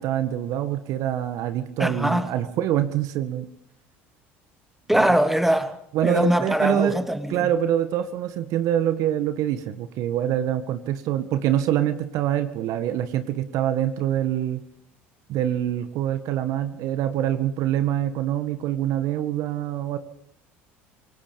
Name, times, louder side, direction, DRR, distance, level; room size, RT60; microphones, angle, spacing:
voice 1, 0.0-3.5 4.9-5.2 5.9-7.0 7.3-14.6 15.3-20.0, right 11 dB, 65° right, 10 dB, 1.8 m, -25 dB
voice 2, 1.8-2.3 4.9-5.7 6.0-7.5, equal, 5° right, 8 dB, 2.6 m, -22 dB
25.5 x 19.0 x 5.3 m, 0.71 s
hypercardioid pair, 75°, 6 cm